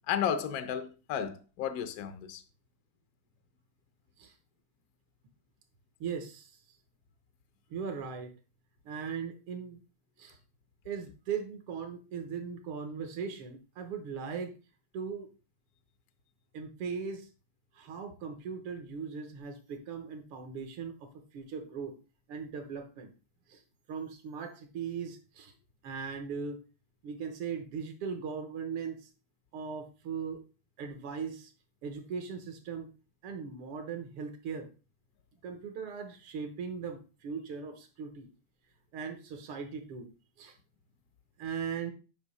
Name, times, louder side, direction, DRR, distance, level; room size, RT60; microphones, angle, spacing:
voice 1, 0.1-2.4, left 8 dB, 80° left, 0.8 m, -33 dB
voice 2, 6.0-6.6 7.7-8.3 8.8-9.8 10.2-10.4 10.9-14.6 14.9-15.3 16.5-17.3 17.8-21.9 22.3-23.1 23.5-23.6 23.9-25.5 25.8-26.6 27.0-29.1 29.5-30.4 30.8-31.5 31.8-32.9 33.2-34.7 35.4-38.3 38.9-40.1 40.4-40.6 41.4-41.9, right 6 dB, 85° right, 2.0 m, -39 dB
8.1 x 2.7 x 5.3 m
omnidirectional pair, 2.4 m